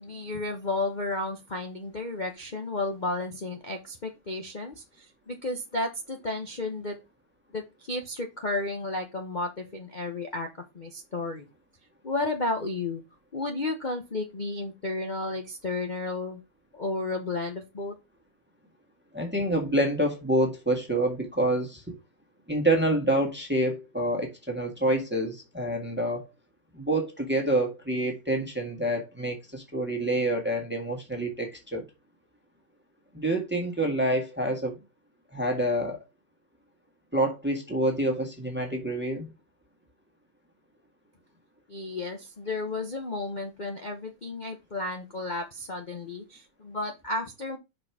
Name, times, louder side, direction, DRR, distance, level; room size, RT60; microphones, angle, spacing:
voice 1, 0.0-7.0 7.5-10.5 10.7-11.5 12.0-13.0 13.3-16.4 16.7-18.0 41.7-47.6, left 2 dB, 90° left, 0.4 m, -32 dB
voice 2, 19.1-22.0 22.5-26.3 26.7-31.8 33.1-34.8 35.3-36.0 37.1-39.3, right 1 dB, 5° right, 1.3 m, -27 dB
6.3 x 4.3 x 4.7 m
omnidirectional pair, 2.3 m